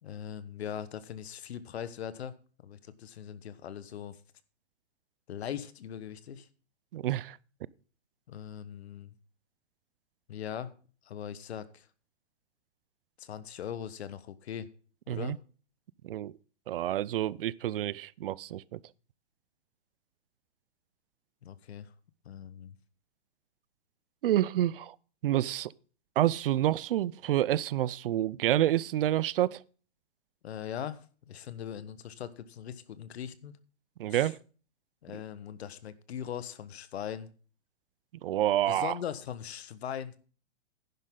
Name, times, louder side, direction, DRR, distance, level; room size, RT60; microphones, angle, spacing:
voice 1, 0.0-2.3 2.6-4.2 5.3-6.5 8.3-9.1 10.3-10.7 11.0-11.9 13.2-14.7 15.1-15.4 21.4-21.9 22.2-22.8 30.4-33.6 34.1-34.3 35.0-37.3 38.7-40.2, left 9 dB, 65° left, 1.3 m, -40 dB
voice 2, 6.9-7.4 15.1-15.4 16.0-16.3 16.7-18.8 24.2-25.0 25.2-25.7 26.2-29.6 34.0-34.4 38.2-39.0, right 13 dB, 55° right, 0.5 m, -28 dB
11.0 x 10.5 x 3.8 m
hypercardioid pair, 140°, 34 cm